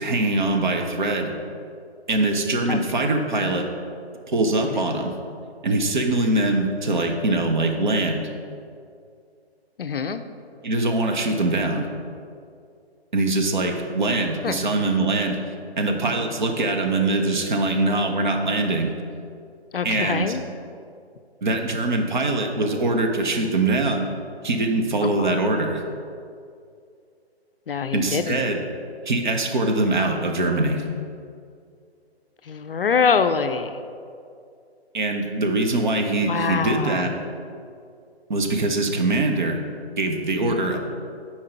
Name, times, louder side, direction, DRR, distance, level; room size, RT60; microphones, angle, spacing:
voice 1, 0.0-1.3 2.1-3.7 4.3-5.1 5.6-8.3 10.6-11.9 13.1-15.4 15.8-18.9 19.8-20.3 21.4-24.1 24.4-25.8 27.9-28.6 29.1-30.8 34.9-37.1 38.3-39.6 40.0-40.8, right 2 dB, 45° right, 3 dB, 0.8 m, -23 dB
voice 2, 9.8-10.2 14.4-14.6 19.7-20.4 25.0-25.4 27.7-28.4 32.4-33.8 36.2-37.1 40.4-40.7, left 5 dB, 60° left, 9 dB, 0.4 m, -25 dB
7.3 x 4.6 x 4.4 m, 2.4 s
figure-of-eight pair, 140°, 33 cm